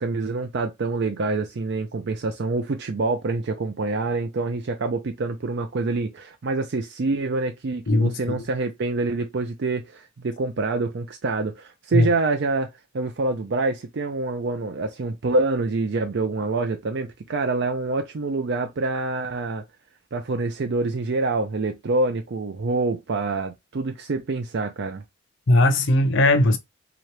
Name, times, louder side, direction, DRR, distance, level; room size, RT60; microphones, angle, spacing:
voice 1, 0.0-19.6 20.1-25.0, right 3 dB, 60° right, 0.5 m, -26 dB
voice 2, 7.9-8.4 11.9-12.1 25.5-26.6, left 1 dB, 60° left, 0.7 m, -18 dB
3.7 x 2.9 x 3.2 m
head